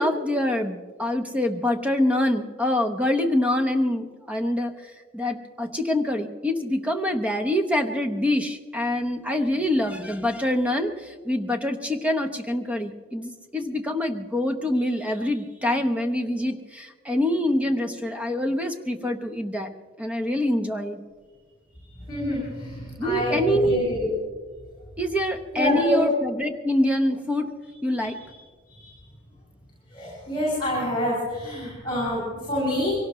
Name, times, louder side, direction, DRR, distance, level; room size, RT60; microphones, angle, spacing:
voice 1, 0.0-19.7 20.0-21.0 23.0-23.8 25.0-27.5 27.8-28.2, left 1 dB, 5° right, 5 dB, 0.9 m, -25 dB
voice 2, 22.1-24.1 25.5-26.0 28.7-28.9 29.9-32.9, left 1 dB, 25° left, -7 dB, 6.5 m, -26 dB
24.0 x 18.0 x 3.1 m, 1.5 s
head